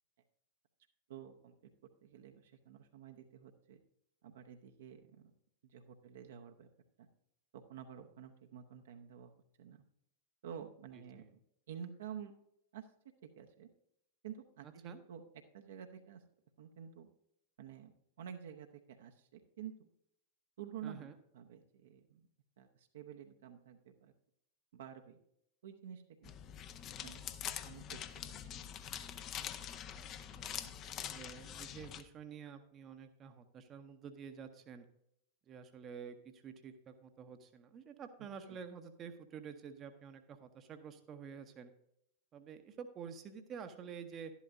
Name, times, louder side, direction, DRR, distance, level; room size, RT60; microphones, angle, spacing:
voice 1, 1.1-1.6 2.0-3.8 4.2-5.3 5.6-6.7 7.0-7.1 7.5-9.3 9.6-9.8 10.4-11.4 11.7-12.3 12.7-12.9 13.2-13.7 14.2-15.2 15.5-16.2 16.6-17.1 17.6-19.9 20.6-22.3 22.6-24.1 24.7-25.2 25.6-26.5 27.0-28.6 38.5-38.6, right 8 dB, 60° right, 5 dB, 0.8 m, -50 dB
voice 2, 20.8-21.1 29.9-30.0 30.4-30.8 31.1-34.8 35.5-41.7 42.3-44.3, right 7 dB, 30° right, 8 dB, 0.8 m, -49 dB
sound 1, 26.2-32.0, left 9 dB, 35° left, 0.6 m, -45 dB
11.5 x 11.0 x 2.6 m, 0.74 s
figure-of-eight pair, 90°, 0 cm